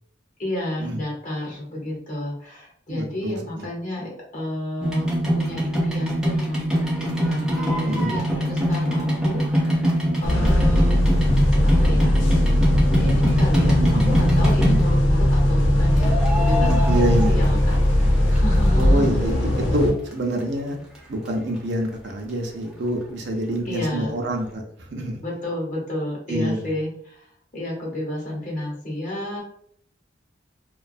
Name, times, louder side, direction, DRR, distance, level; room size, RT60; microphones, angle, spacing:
voice 1, 0.4-5.0 5.3-11.3 11.6-12.1 12.9-17.8 18.3-19.2 23.6-24.1 25.2-27.3 27.5-29.4, left 1 dB, 40° left, -3 dB, 0.8 m, -31 dB
voice 2, 2.9-3.7 7.9-8.2 13.6-14.2 16.6-17.4 18.7-20.8 21.1-25.2 26.3-26.7, right 1 dB, 65° right, 2 dB, 0.5 m, -26 dB
sound 1, 4.8-15.1 16.0-18.1 18.3-19.3 19.8-19.9 20.1-20.2 20.4-20.5 20.9-21.0 21.3-21.4, equal, 5° right, 0.5 m, -24 dB
sound 2, 10.2-19.9, left 1 dB, 80° left, 0.6 m, -19 dB
2.4 x 2.2 x 2.5 m, 0.63 s
head